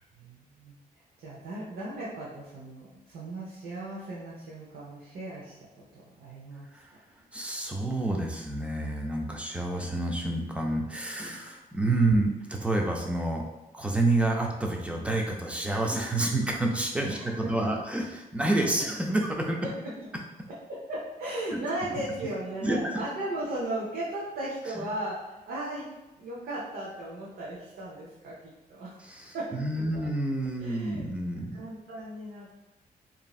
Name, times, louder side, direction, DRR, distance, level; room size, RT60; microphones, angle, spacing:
voice 1, 0.2-0.8 1.2-5.5 5.9-6.7 17.1-17.7 19.6-19.9 20.7-25.9 26.2-29.0 29.3-29.6 29.9-30.1 30.6-31.1 31.5-32.5, right 1 dB, 85° right, -6 dB, 0.7 m, -36 dB
voice 2, 7.3-13.4 13.7-17.2 17.5-19.6 21.5-21.6 21.9-22.0 22.6-22.9 24.7-24.9 29.0-31.6, right 2 dB, 10° right, 1 dB, 0.3 m, -28 dB
3.0 x 2.5 x 2.3 m, 1.0 s
cardioid pair, 125°, 16 cm